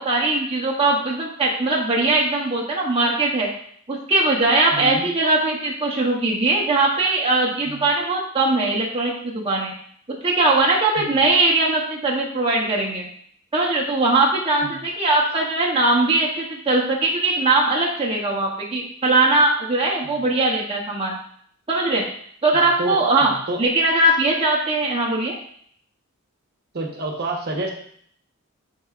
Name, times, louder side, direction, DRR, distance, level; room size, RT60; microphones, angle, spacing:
voice 1, 0.0-3.5 3.9-9.7 10.2-13.1 13.5-21.2 21.7-22.0 22.4-23.3 23.6-25.3, right 2 dB, 25° right, -3 dB, 0.8 m, -20 dB
voice 2, 4.7-5.0 7.7-7.9 11.0-11.1 14.6-14.8 20.0-20.2 22.5-23.6 26.7-27.7, right 2 dB, 50° right, 2 dB, 1.0 m, -29 dB
8.5 x 4.7 x 2.4 m, 0.62 s
head